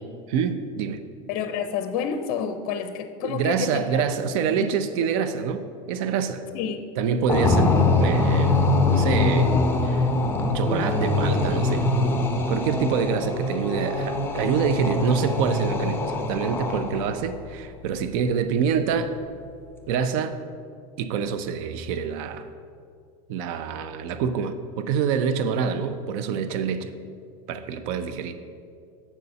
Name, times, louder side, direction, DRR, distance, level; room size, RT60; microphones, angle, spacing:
voice 1, 0.3-1.0 3.2-6.4 7.0-7.7 8.0-9.6 9.8-10.1 10.5-11.9 12.5-19.1 19.9-20.4 21.0-22.5 23.3-26.9 27.5-28.3, right 7 dB, 65° right, 10 dB, 0.5 m, -26 dB
voice 2, 1.3-4.0 4.5-4.8 6.5-6.8, left 7 dB, 55° left, 9 dB, 0.5 m, -29 dB
sound 1, 7.3-17.2, left 2 dB, 10° left, 0.8 m, -23 dB
7.3 x 4.1 x 6.7 m, 2.3 s
supercardioid pair, 125°, 18 cm